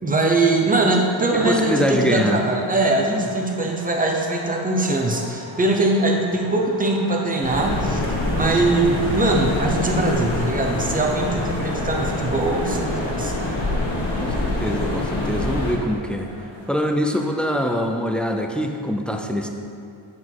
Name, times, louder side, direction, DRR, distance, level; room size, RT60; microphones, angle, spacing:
voice 1, 0.0-8.0 8.3-13.3, right 2 dB, 20° right, 1 dB, 0.8 m, -21 dB
voice 2, 1.3-2.4 3.0-3.2 14.2-16.3 16.7-19.5, equal, ahead, 3 dB, 0.3 m, -24 dB
sound 1, 1.3-18.9, right 1 dB, 65° right, 1.5 m, -40 dB
sound 2, 7.4-15.8, left 1 dB, 65° left, 1.5 m, -25 dB
7.5 x 6.2 x 4.6 m, 2.5 s
wide cardioid pair, 150°, 48 cm